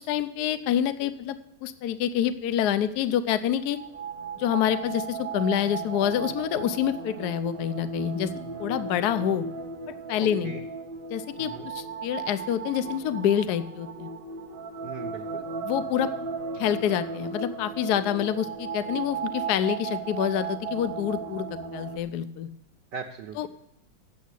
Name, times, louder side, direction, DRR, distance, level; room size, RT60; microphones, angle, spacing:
voice 1, 0.0-3.8 4.4-8.3 8.6-9.4 9.9-10.5 11.1-14.1 15.6-16.1 16.6-21.5 21.7-22.5 23.4-23.5, left 10 dB, 65° left, 12 dB, 1.0 m, -27 dB
getting to the winery, 3.6-22.0, right 5 dB, 45° right, 0.7 m, -36 dB
voice 2, 10.2-10.6 11.4-11.7 14.8-15.4 22.9-23.5, right 6 dB, 65° right, 1 dB, 1.5 m, -39 dB
9.3 x 7.2 x 8.2 m, 0.80 s
omnidirectional pair, 2.1 m